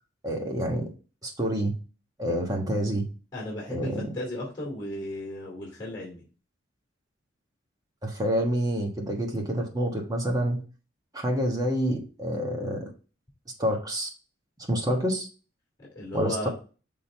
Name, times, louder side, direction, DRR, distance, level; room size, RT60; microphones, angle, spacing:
voice 1, 0.2-0.9 1.2-1.7 2.2-3.0 3.7-4.1 8.0-10.6 11.1-12.9 13.6-14.1 14.6-15.3 16.1-16.5, equal, 20° right, 1 dB, 1.4 m, -27 dB
voice 2, 3.3-6.2 15.9-16.5, left 1 dB, 20° left, -3 dB, 2.5 m, -35 dB
6.4 x 3.8 x 4.4 m, 0.35 s
head